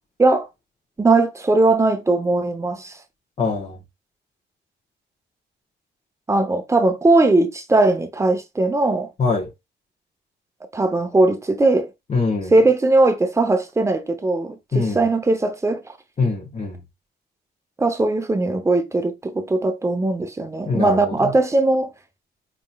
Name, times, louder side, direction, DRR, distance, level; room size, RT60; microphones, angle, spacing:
voice 1, 1.0-2.9 6.3-9.1 10.7-11.9 12.5-15.8 17.8-21.9, right 2 dB, 15° right, 0.7 m, -19 dB
voice 2, 3.4-3.8 9.2-9.5 12.1-12.5 14.7-15.0 16.2-16.8 20.7-21.3, left 4 dB, 35° left, 1.2 m, -23 dB
4.3 x 3.7 x 2.3 m
cardioid pair, 90°, 20 cm